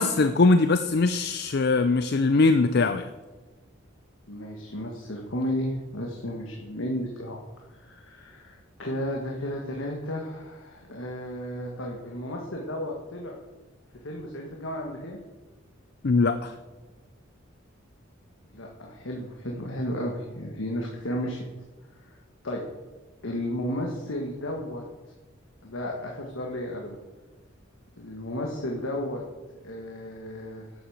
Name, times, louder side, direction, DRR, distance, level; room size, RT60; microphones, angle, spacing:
voice 1, 0.0-3.1 16.0-16.5, left 3 dB, 55° left, 10 dB, 0.5 m, -21 dB
voice 2, 4.3-7.4 7.7-13.4 14.0-15.2 18.5-21.5 22.0-22.2 22.4-22.6 23.2-24.8 25.6-27.0 28.0-29.2 29.6-30.7, left 1 dB, 85° left, 0 dB, 1.7 m, -33 dB
11.0 x 8.5 x 7.2 m, 1.2 s
head